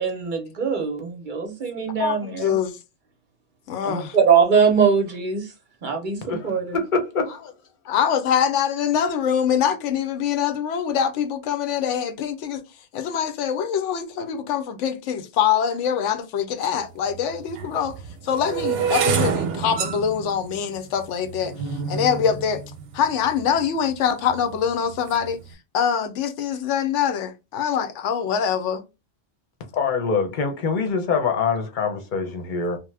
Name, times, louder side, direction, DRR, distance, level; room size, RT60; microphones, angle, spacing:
voice 1, 0.0-2.5 3.8-5.5 5.8-6.8, right 6 dB, 50° right, 0.7 m, -22 dB
voice 2, 2.0-2.8 3.7-4.2 7.9-12.6 12.9-18.0 18.2-21.5 21.9-22.6 22.9-25.4 25.7-28.8, left 8 dB, 85° left, 0.9 m, -24 dB
voice 3, 6.3-7.5 29.7-32.8, left 5 dB, 50° left, 0.8 m, -24 dB
sound 1, 16.6-16.7 17.5-23.6 24.3-24.7 24.9-25.3, right 6 dB, 90° right, 0.9 m, -28 dB
2.8 x 2.1 x 3.2 m
omnidirectional pair, 1.2 m